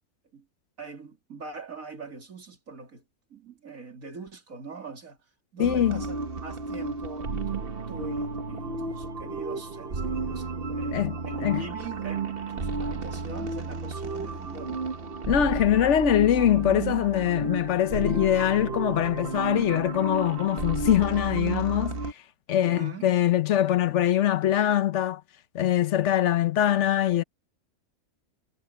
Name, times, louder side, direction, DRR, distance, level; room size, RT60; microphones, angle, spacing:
voice 1, 0.8-3.0 3.3-5.2 5.5-14.8 22.6-23.1, right 4 dB, 65° right, 3.2 m, -42 dB
voice 2, 5.6-6.0 10.9-11.2 11.4-11.6 15.3-22.0 22.5-25.2 25.5-27.2, left 11 dB, 60° left, 1.0 m, -23 dB
sound 1, 5.6-22.1, right 4 dB, 40° right, 1.3 m, -32 dB
omnidirectional pair, 1.6 m